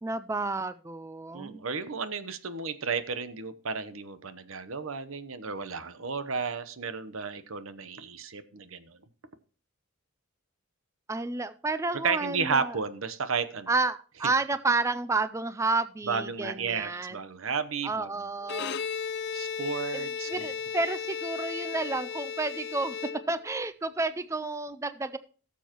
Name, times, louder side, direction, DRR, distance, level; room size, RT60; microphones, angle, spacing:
voice 1, 0.0-1.7 11.1-12.8 13.7-17.2 17.8-18.8 19.9-23.0 23.3-25.2, right 3 dB, 15° right, 13 dB, 0.4 m, -31 dB
voice 2, 1.3-9.0 12.0-13.7 16.0-18.1 19.3-20.5, right 5 dB, 80° right, 12 dB, 0.9 m, -33 dB
Bowed string instrument, 18.4-23.7, left 6 dB, 55° left, 0.5 m, -35 dB
17.5 x 7.2 x 3.0 m, 0.39 s
head